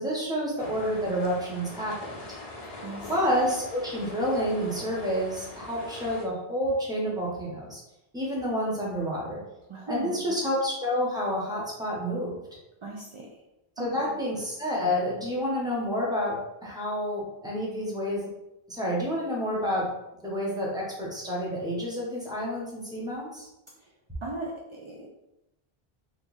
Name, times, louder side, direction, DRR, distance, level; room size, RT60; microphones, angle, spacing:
voice 1, 0.0-2.2 3.1-7.8 8.1-9.4 9.9-12.3 13.8-18.3 18.7-19.9 20.2-23.5, equal, 5° right, -4 dB, 0.8 m, -29 dB
sound 1, 0.6-6.3, left 2 dB, 45° left, 0.6 m, -42 dB
voice 2, 2.8-3.1 9.7-10.3 12.8-13.4 13.8-14.1 23.8-23.9 24.2-25.1, right 2 dB, 55° right, -2 dB, 0.3 m, -38 dB
3.1 x 2.4 x 3.9 m, 0.92 s
omnidirectional pair, 1.0 m